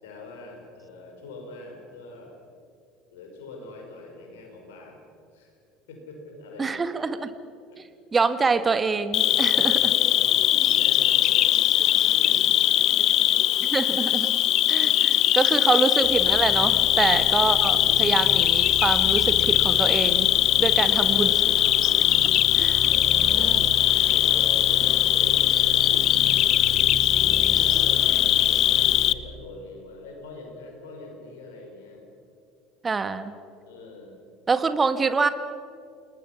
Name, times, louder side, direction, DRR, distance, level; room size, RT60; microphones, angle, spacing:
voice 1, 0.0-2.3 3.1-5.0 5.3-5.6 5.9-6.8 7.7-7.8 9.2-13.7 14.8-15.5 20.7-21.4 22.8-23.6 24.1-32.1 33.7-34.2, left 3 dB, 70° left, 2 dB, 5.4 m, -43 dB
voice 2, 6.6-7.3 7.8-9.8 13.7-14.3 14.7-20.3 20.6-21.3 22.6-22.8 23.4-23.6 32.8-33.3 34.5-35.3, right 4 dB, 25° right, 11 dB, 1.6 m, -25 dB
Cricket, 9.1-29.1, left 13 dB, 50° left, 0.6 m, -21 dB
sound 1, 16.0-28.9, right 3 dB, 40° right, 6.9 m, -35 dB
29.0 x 19.5 x 6.0 m, 2.4 s
figure-of-eight pair, 65°, 0 cm